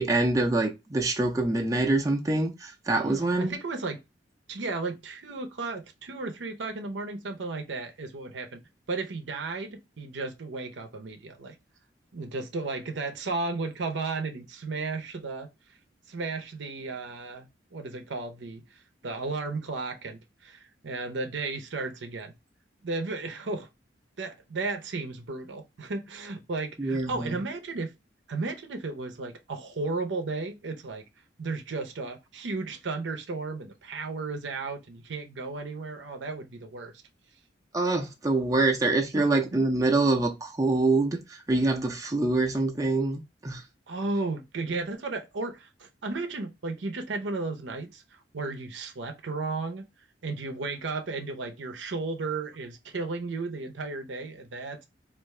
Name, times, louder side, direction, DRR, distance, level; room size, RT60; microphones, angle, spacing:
voice 1, 0.0-3.5 26.8-27.3 37.7-41.2 41.5-43.6, right 2 dB, 20° right, 0.5 m, -25 dB
voice 2, 3.0-4.0 4.5-8.6 8.9-11.6 12.1-15.5 16.1-18.6 19.0-22.3 22.8-23.7 24.2-27.9 28.3-31.0 31.4-36.9 39.1-39.7 43.9-48.0 48.3-49.9 50.2-54.9, right 3 dB, 80° right, 0.7 m, -34 dB
3.6 x 2.5 x 3.1 m
head